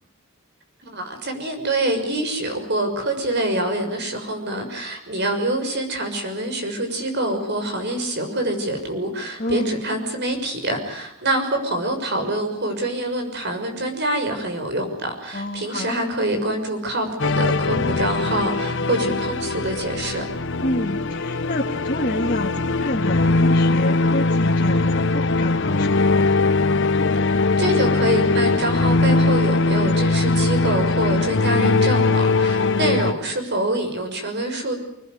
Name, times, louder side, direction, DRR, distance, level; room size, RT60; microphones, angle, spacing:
voice 1, 0.8-20.2 27.3-34.8, right 1 dB, 50° right, 6 dB, 6.4 m, -25 dB
voice 2, 9.4-9.9 15.3-15.9 20.6-26.4 32.6-33.1, left 1 dB, 40° left, -2 dB, 2.4 m, -29 dB
sound 1, 17.2-33.1, left 3 dB, 55° left, 1.0 m, -20 dB
26.5 x 20.5 x 9.7 m, 0.75 s
head